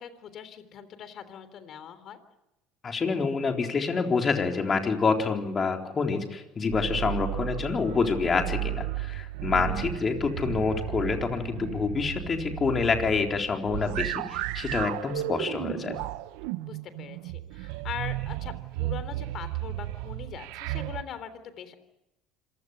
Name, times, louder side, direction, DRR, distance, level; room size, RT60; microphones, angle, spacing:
voice 1, 0.0-2.2 16.6-21.8, left 8 dB, 50° left, 12 dB, 3.4 m, -41 dB
voice 2, 2.8-16.0, left 5 dB, 30° left, 4 dB, 4.1 m, -27 dB
sound 1, 6.7-21.0, right 17 dB, 80° right, 0.9 m, -34 dB
26.5 x 16.5 x 9.8 m, 0.93 s
supercardioid pair, 90°, 0 cm